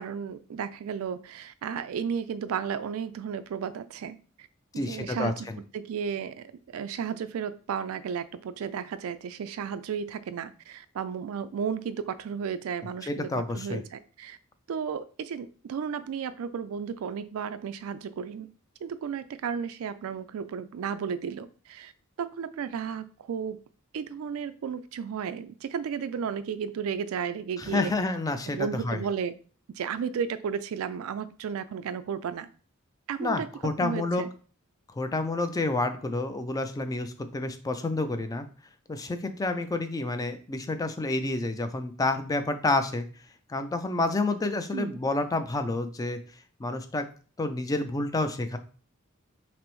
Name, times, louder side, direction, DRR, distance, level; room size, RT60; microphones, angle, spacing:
voice 1, 0.0-4.5 4.7-5.5 5.7-6.3 6.7-14.4 14.7-18.5 18.8-21.9 22.2-23.6 23.9-27.9 28.5-29.3 29.7-32.5 33.1-33.5 33.8-34.3 44.7-45.0, right 7 dB, 70° right, 13 dB, 0.3 m, -33 dB
voice 2, 4.8-5.6 13.0-13.8 27.6-29.0 33.2-34.3 34.9-38.5 38.9-43.1 43.5-46.2 46.6-47.1 47.4-48.6, left 2 dB, 15° left, 9 dB, 0.3 m, -29 dB
5.9 x 2.0 x 3.0 m, 0.40 s
head